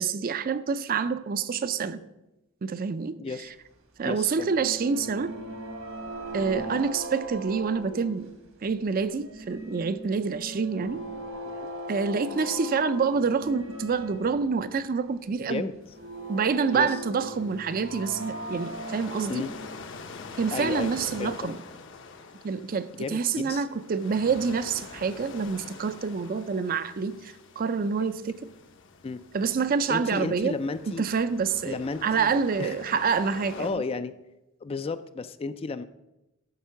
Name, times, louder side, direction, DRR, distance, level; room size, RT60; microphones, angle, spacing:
voice 1, 0.0-2.0 2.6-3.2 4.0-5.3 6.3-8.3 8.6-11.0 11.9-15.7 16.3-19.4 20.4-21.6 22.4-28.4 29.3-30.5 30.9-33.8, right 5 dB, 40° right, 13 dB, 0.4 m, -27 dB
voice 2, 3.2-3.5 4.0-4.5 6.5-6.8 11.4-11.7 15.5-15.7 16.7-17.0 19.3-19.5 20.5-20.9 21.2-21.5 22.9-23.7 29.0-29.2 29.9-31.0 31.6-32.8 33.6-34.1 34.6-35.8, left 4 dB, 25° left, 12 dB, 0.3 m, -33 dB
sound 1, 4.1-8.7 9.0-14.5 14.8-14.9 15.9-19.9 21.0-21.1, right 1 dB, 70° right, 1.6 m, -39 dB
sound 2, 15.8-33.7, left 4 dB, 60° left, 0.8 m, -45 dB
12.0 x 4.5 x 5.7 m, 0.95 s
head